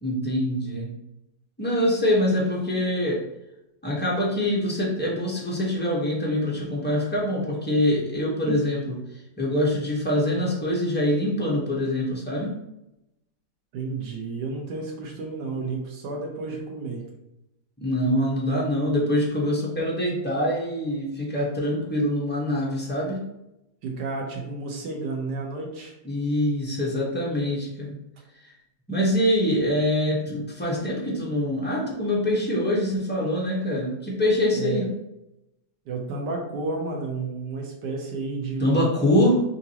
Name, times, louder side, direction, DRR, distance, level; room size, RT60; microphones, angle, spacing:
voice 1, 0.0-0.9 1.6-3.2 3.8-9.0 9.4-12.6 17.8-23.2 26.0-28.0 28.4-28.5 28.9-34.9 38.6-39.4, left 1 dB, 10° left, -4 dB, 0.5 m, -24 dB
voice 2, 13.7-17.0 23.8-25.9 34.5-34.9 35.9-38.9, right 3 dB, 70° right, 1 dB, 1.4 m, -31 dB
5.6 x 2.6 x 2.9 m, 0.88 s
omnidirectional pair, 2.0 m